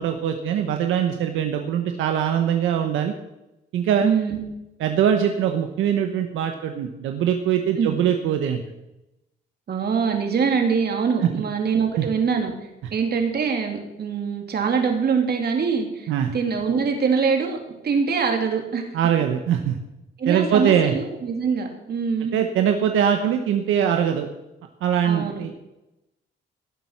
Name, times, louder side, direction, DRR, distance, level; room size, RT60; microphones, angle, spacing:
voice 1, 0.0-3.1 3.7-4.1 4.8-8.6 11.2-11.3 12.0-12.1 16.1-16.3 18.9-19.8 20.3-21.0 22.3-24.3 24.8-25.6, right 9 dB, 85° right, 5 dB, 1.1 m, -22 dB
voice 2, 4.0-4.4 7.8-8.0 9.7-12.5 12.9-17.6 17.8-18.9 20.2-22.4 25.0-25.6, right 6 dB, 55° right, 3 dB, 3.0 m, -23 dB
17.0 x 7.5 x 5.9 m, 0.93 s
cardioid pair, 90°, 20 cm